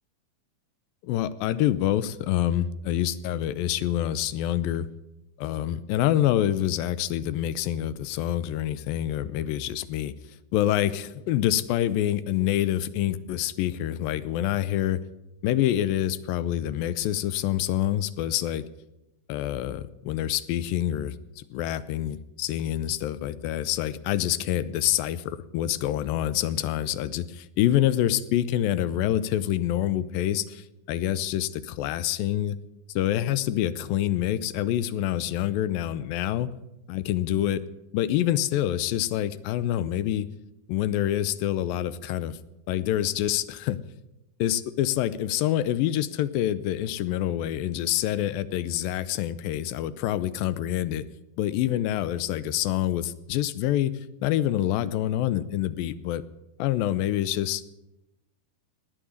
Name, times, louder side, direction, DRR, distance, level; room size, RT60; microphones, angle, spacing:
voice 1, 1.0-4.9 5.4-10.1 10.5-15.0 15.4-18.6 19.3-32.6 33.0-36.5 36.9-37.6 37.9-40.3 40.7-42.4 42.7-43.8 44.4-51.0 51.4-56.2 56.6-57.6, left 12 dB, 80° left, 16 dB, 2.3 m, -26 dB
19.0 x 7.5 x 9.4 m, 0.94 s
omnidirectional pair, 4.3 m